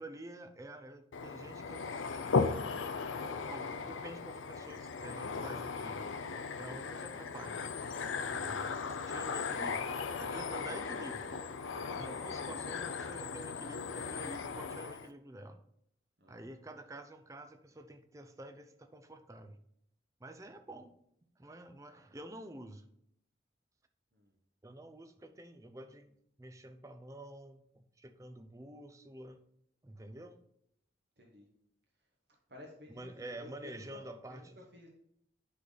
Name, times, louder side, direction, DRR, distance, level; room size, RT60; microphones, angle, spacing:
voice 1, 0.0-1.9 3.2-6.1 6.6-7.7 8.2-8.8 9.1-11.3 11.9-15.6 16.3-19.6 20.2-21.0 21.4-22.8 24.6-26.1 26.4-29.4 29.8-30.4 32.9-34.6, right 1 dB, 15° right, 8 dB, 0.4 m, -49 dB
sound 1, 1.1-15.1, left 5 dB, 90° left, 0.5 m, -37 dB
voice 2, 31.2-31.5 32.5-34.0 34.3-34.9, left 1 dB, 55° right, -1 dB, 1.1 m, -54 dB
9.5 x 3.9 x 3.9 m, 0.74 s
head